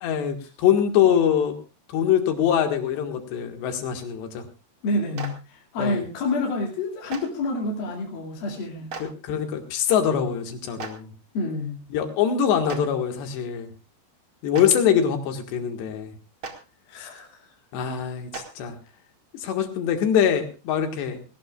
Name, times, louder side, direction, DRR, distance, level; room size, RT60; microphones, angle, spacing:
voice 1, 0.0-1.6 1.9-4.4 5.8-6.0 9.0-11.1 11.9-13.7 14.4-16.1 17.0-17.1 17.7-18.8 19.3-21.3, left 8 dB, 85° left, 5 dB, 4.0 m, -23 dB
voice 2, 4.8-8.9 11.3-11.8 16.9-17.5, left 2 dB, 60° left, -2 dB, 4.2 m, -28 dB
Clapping, 5.2-5.3 7.1-7.2 8.9-9.0 10.8-10.9 12.7-12.8 14.5-14.6 16.4-16.5 18.3-18.4, right 4 dB, 45° right, 2.0 m, -34 dB
20.5 x 18.0 x 2.4 m, 0.31 s
omnidirectional pair, 4.8 m